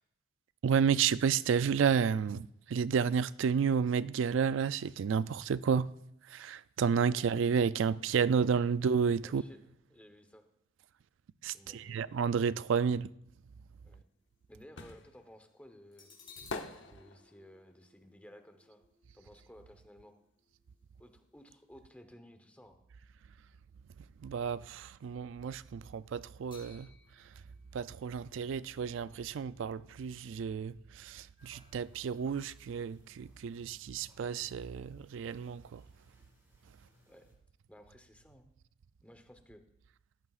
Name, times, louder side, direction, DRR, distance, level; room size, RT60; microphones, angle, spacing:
voice 1, 0.6-5.9 6.2-9.4 11.4-13.1 24.0-27.4 27.7-35.8 36.6-36.8, right 6 dB, 60° right, 0.3 m, -31 dB
voice 2, 9.2-9.6 9.9-10.4 11.5-12.0 13.8-14.0 14.5-16.1 16.8-18.8 19.1-20.2 21.0-22.8 37.1-37.3 37.7-38.4 39.0-39.6, equal, 5° left, 0.9 m, -56 dB
sound 1, 13.5-14.5 15.0-15.1 15.9-23.3 23.7-23.9 26.5-30.3 30.6-30.7, left 5 dB, 25° left, 4.1 m, -62 dB
sound 2, 13.9-19.7 20.0-21.6 21.9-22.0, left 3 dB, 55° left, 0.9 m, -47 dB
sound 3, 31.4-37.3, equal, 15° right, 4.3 m, -68 dB
17.5 x 14.5 x 2.4 m
head